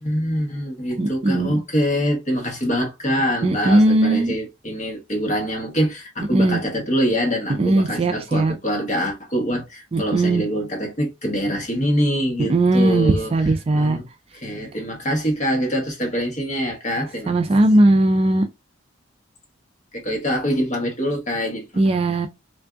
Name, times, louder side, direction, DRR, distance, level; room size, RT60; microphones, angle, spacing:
voice 1, 0.0-13.3 13.7-14.1 14.3-17.3 19.9-21.6, equal, 35° left, 1.1 m, -24 dB
voice 2, 1.0-1.6 3.4-4.3 6.3-6.6 7.6-8.5 9.9-10.4 12.4-14.0 17.3-18.5 21.8-22.3, right 2 dB, 30° right, 0.3 m, -18 dB
3.4 x 2.5 x 2.4 m
head